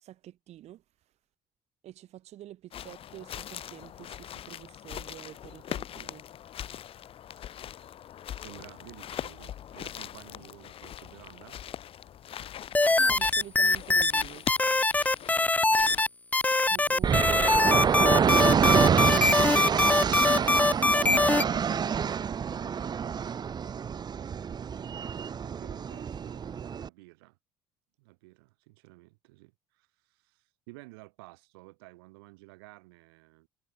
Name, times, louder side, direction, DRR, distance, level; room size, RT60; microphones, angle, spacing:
voice 1, 0.0-0.8 1.8-6.2 13.0-14.5 16.7-23.1, right 13 dB, 65° right, 1.5 m, -47 dB
sound 1, 2.7-16.0, left 10 dB, 50° left, 0.7 m, -41 dB
voice 2, 8.4-11.6 15.9-16.1 25.4-27.4 28.0-33.5, right 24 dB, 85° right, 4.7 m, -52 dB
sound 2, 12.7-14.2 14.5-16.1 16.3-21.4, left 2 dB, 10° left, 0.5 m, -23 dB
sound 3, 17.0-26.9, right 7 dB, 35° right, 0.6 m, -27 dB
hypercardioid pair, 65°, 12 cm